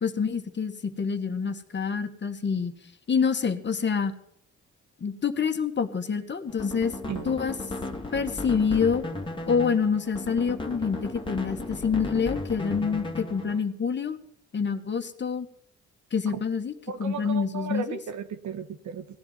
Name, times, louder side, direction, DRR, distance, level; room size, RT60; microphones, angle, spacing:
voice 1, 0.0-2.8 3.1-4.1 5.0-7.0 7.3-7.6 8.1-9.1 9.5-14.2 14.5-15.5 16.1-16.7 17.0-18.0, left 6 dB, 35° left, 7 dB, 1.8 m, -27 dB
sound 1, 6.5-13.6, left 2 dB, 15° left, 2.4 m, -35 dB
voice 2, 16.9-19.1, right 7 dB, 70° right, 10 dB, 1.7 m, -35 dB
17.5 x 11.0 x 5.9 m, 0.71 s
cardioid pair, 90°, 30 cm